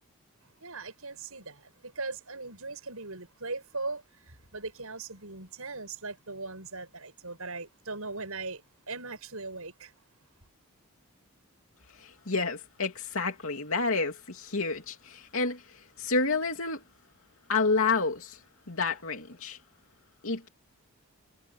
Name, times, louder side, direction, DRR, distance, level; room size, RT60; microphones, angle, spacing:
voice 1, 0.6-8.6 8.9-9.9, right 3 dB, 75° right, 6.8 m, -39 dB
voice 2, 11.9-16.8 17.5-18.4 18.7-19.6 20.2-20.5, left 4 dB, 65° left, 2.9 m, -29 dB
head